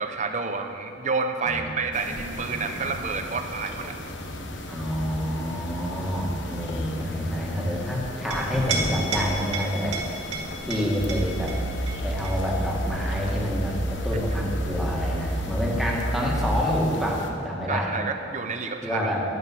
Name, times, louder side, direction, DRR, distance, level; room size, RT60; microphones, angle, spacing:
voice 1, 0.0-4.0 14.3-14.8 17.7-19.1, right 4 dB, 40° right, 6 dB, 0.8 m, -29 dB
voice 2, 1.4-2.0 2.3-3.0 4.7-10.0 10.6-11.6 12.0-17.9 18.8-19.2, equal, ahead, -4 dB, 1.9 m, -28 dB
sound 1, 1.9-17.3, left 1 dB, 70° left, 1.0 m, -37 dB
Chink clink, 8.1-15.2, right 3 dB, 90° right, 2.0 m, -35 dB
sound 2, 11.0-16.4, right 1 dB, 15° left, 1.0 m, -30 dB
11.0 x 9.7 x 6.1 m, 2.5 s
head